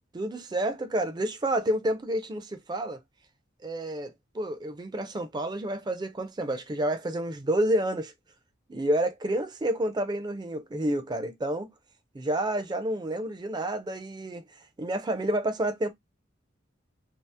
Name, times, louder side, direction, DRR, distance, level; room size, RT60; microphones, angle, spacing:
voice 1, 0.1-3.0 3.6-8.1 8.7-11.7 12.1-14.4 14.8-15.9, right 1 dB, 20° right, 0.5 m, -29 dB
2.8 x 2.0 x 3.2 m
head